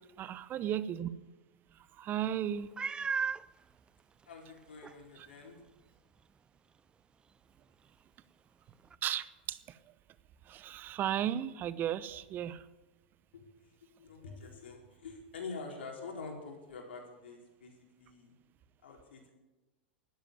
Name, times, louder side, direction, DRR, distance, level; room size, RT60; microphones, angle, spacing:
voice 1, 0.2-1.1 1.9-2.7 9.0-9.8 10.5-12.7, right 10 dB, 35° right, 15 dB, 0.9 m, -35 dB
Meow, 2.8-3.5 4.2-4.3 4.8-4.9 8.9-9.0, right 5 dB, 15° right, 0.4 m, -34 dB
voice 2, 4.3-5.6 13.3-13.7 14.0-18.3 18.8-19.3, left 4 dB, 80° left, 1 dB, 4.3 m, -46 dB
12.5 x 10.0 x 9.6 m, 1.1 s
hypercardioid pair, 110°, 6 cm